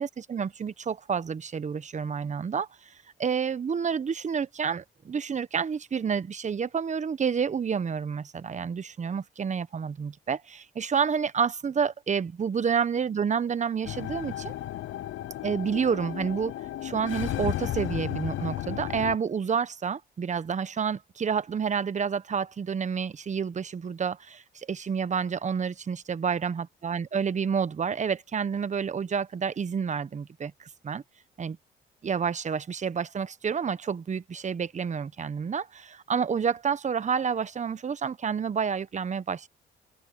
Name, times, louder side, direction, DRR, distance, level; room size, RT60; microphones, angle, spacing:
voice 1, 0.0-2.9 3.2-14.5 15.4-16.5 16.8-31.0 31.4-31.6 32.0-39.5, right 6 dB, 35° right, 1.0 m, -29 dB
sound 1, 13.8-19.2, left 14 dB, 80° left, 0.8 m, -34 dB
open air
cardioid pair, 90°, 20 cm